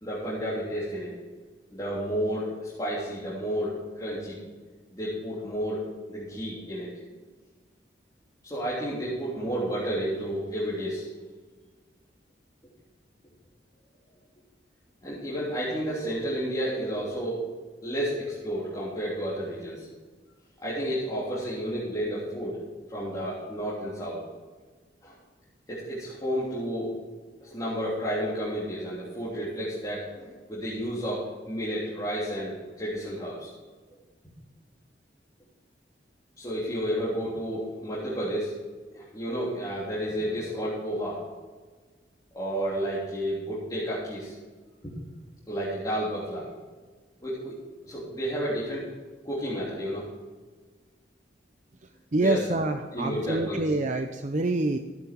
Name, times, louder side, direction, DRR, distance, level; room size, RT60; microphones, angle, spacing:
voice 1, 0.0-1.1 1.7-4.4 4.9-6.9 8.4-11.1 15.0-17.4 17.8-19.9 20.6-22.7 22.9-24.3 25.0-25.2 25.7-26.9 27.4-33.5 36.4-38.6 38.9-41.2 42.3-44.4 44.8-44.9 45.5-46.5 47.2-47.6 47.9-48.9 49.2-50.2 52.1-52.4 52.9-53.9, equal, 20° left, -9 dB, 3.5 m, -31 dB
voice 2, 52.1-54.8, right 2 dB, 45° right, 6 dB, 0.7 m, -26 dB
15.5 x 9.6 x 4.6 m, 1.4 s
head